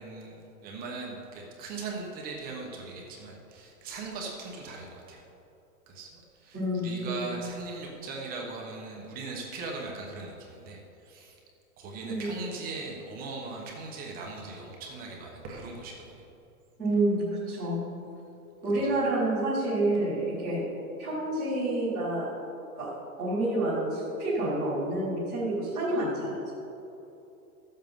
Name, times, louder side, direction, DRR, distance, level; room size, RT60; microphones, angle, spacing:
voice 1, 0.0-5.2 5.9-6.6 6.8-11.4 11.8-16.2 18.8-18.9, right 3 dB, 20° right, -1 dB, 1.1 m, -39 dB
voice 2, 6.5-7.3 12.0-12.3 16.8-17.9 18.6-20.6 21.0-22.3 22.7-22.9 23.2-26.5, right 1 dB, ahead, -17 dB, 0.3 m, -28 dB
12.5 x 7.6 x 5.3 m, 2.9 s
hypercardioid pair, 160°, 44 cm